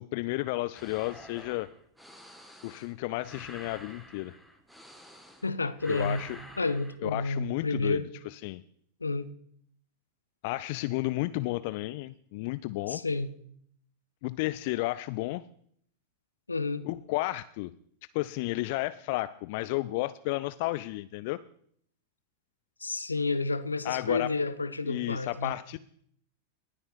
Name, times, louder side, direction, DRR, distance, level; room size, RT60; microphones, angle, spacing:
voice 1, 0.0-1.7 2.6-4.4 5.9-6.4 7.0-8.6 10.4-13.0 14.2-15.5 16.8-17.7 18.1-21.4 23.8-24.3 24.8-25.8, left 19 dB, 50° left, 0.4 m, -32 dB
sound 1, 0.7-5.5 5.8-6.9, equal, ahead, 1.7 m, -48 dB
voice 2, 5.4-6.2 6.6-8.1 9.0-9.3 12.9-13.3 16.5-16.9 22.8-25.5, left 3 dB, 80° left, 0.7 m, -30 dB
18.5 x 6.5 x 4.5 m
figure-of-eight pair, 90°, 0 cm